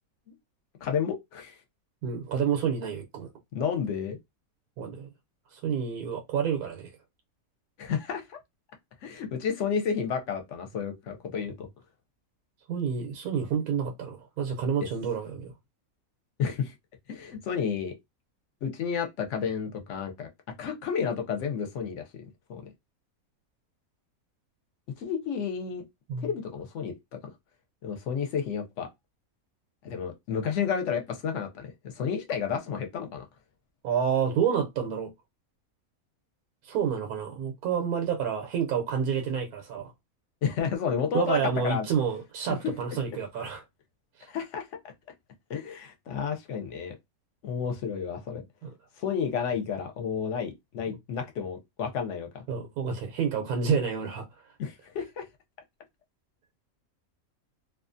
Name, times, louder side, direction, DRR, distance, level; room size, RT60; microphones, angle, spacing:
voice 1, 0.8-1.5 3.5-4.2 7.8-8.4 9.0-11.7 14.8-14.9 16.4-16.7 17.1-17.9 18.6-20.3 20.6-22.7 25.0-25.8 26.2-26.9 27.8-28.9 29.8-31.7 32.0-33.2 40.4-41.9 42.6-42.7 44.3-44.6 45.5-46.9 47.4-48.4 49.0-52.4 54.6-55.3, left 7 dB, 65° left, 0.9 m, -31 dB
voice 2, 2.0-3.3 4.8-5.1 5.5-6.9 12.7-15.5 26.1-26.3 33.8-35.1 36.6-39.9 41.1-43.6 48.6-48.7 52.5-54.3, right 7 dB, 90° right, 1.1 m, -29 dB
2.6 x 2.3 x 2.5 m
omnidirectional pair, 1.5 m